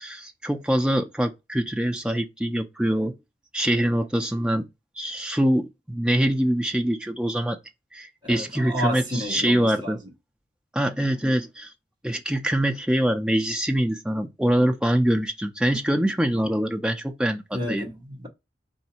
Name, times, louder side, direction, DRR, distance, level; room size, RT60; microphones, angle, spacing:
voice 1, 0.0-3.1 3.5-4.7 5.0-7.6 7.9-10.0 10.7-11.7 12.0-17.8, right 1 dB, 5° right, 0.5 m, -24 dB
voice 2, 8.2-10.0 17.5-18.3, equal, 25° right, 1.0 m, -31 dB
4.0 x 2.7 x 4.3 m
head